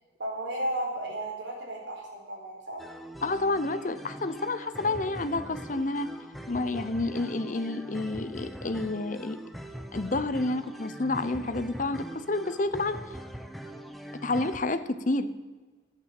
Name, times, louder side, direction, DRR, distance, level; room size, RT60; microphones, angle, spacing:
voice 1, 0.2-2.8, right 1 dB, 70° right, -1 dB, 4.3 m, -34 dB
sound 1, 2.8-14.6, equal, ahead, 0.7 m, -42 dB
voice 2, 3.2-6.1 6.5-9.4 9.9-13.0 14.2-15.3, left 2 dB, 40° left, 12 dB, 0.7 m, -29 dB
12.5 x 9.0 x 7.7 m, 1.3 s
head